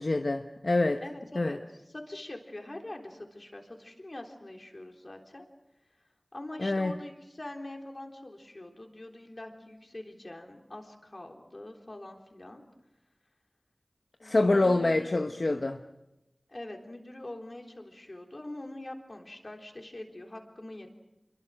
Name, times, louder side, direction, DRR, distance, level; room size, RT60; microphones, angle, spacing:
voice 1, 0.0-1.0 1.3-1.6 6.6-7.0 14.2-15.8, left 2 dB, 70° left, 5 dB, 1.0 m, -26 dB
voice 2, 1.0-1.6 1.9-5.5 6.3-12.6 14.2-15.3 16.5-20.9, left 1 dB, 55° left, 2 dB, 3.6 m, -43 dB
27.0 x 23.0 x 6.4 m, 0.94 s
wide cardioid pair, 40°, 0 cm